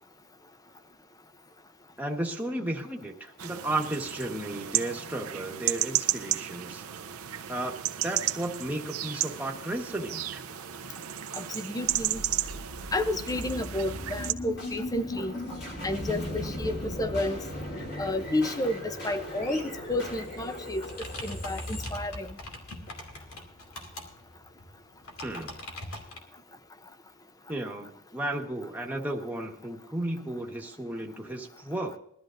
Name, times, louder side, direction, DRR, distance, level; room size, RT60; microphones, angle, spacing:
voice 1, 2.0-6.8 7.5-7.7 8.0-10.4 25.2-25.6 27.5-32.0, right 1 dB, 10° right, 1.4 m, -34 dB
sound 1, 3.4-14.3, right 12 dB, 75° right, 0.7 m, -33 dB
voice 2, 11.3-12.2 12.9-15.3 15.8-17.4 18.0-20.9 21.2-22.3, left 1 dB, 15° left, 0.7 m, -31 dB
sound 2, 11.9-22.9, left 1 dB, 50° left, 5.3 m, -38 dB
sound 3, 20.8-26.2, left 1 dB, 75° left, 2.6 m, -42 dB
21.5 x 12.5 x 2.6 m
head